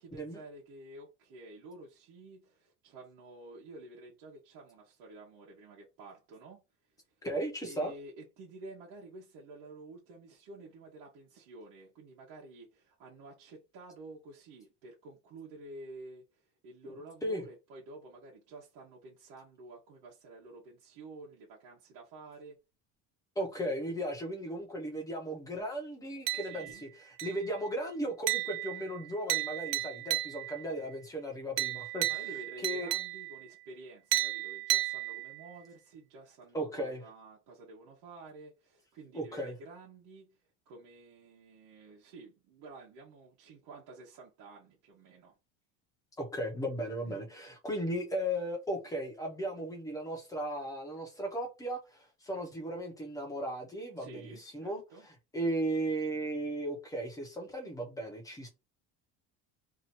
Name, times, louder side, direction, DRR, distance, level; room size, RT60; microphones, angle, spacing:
voice 1, 0.0-6.6 7.6-22.6 26.4-26.8 32.1-45.4 46.8-47.3 54.0-55.1, right 2 dB, 70° right, 1.1 m, -51 dB
voice 2, 7.2-7.9 16.8-16.9 17.2-17.4 23.4-32.2 32.6-32.9 36.5-37.0 39.1-39.5 46.2-58.5, right 1 dB, 10° left, 0.8 m, -36 dB
sound 1, 26.3-26.8 27.2-27.6 28.3-30.7 31.6-33.5 34.1-35.5, right 16 dB, 50° right, 0.4 m, -34 dB
2.9 x 2.6 x 4.3 m
cardioid pair, 170°, 33 cm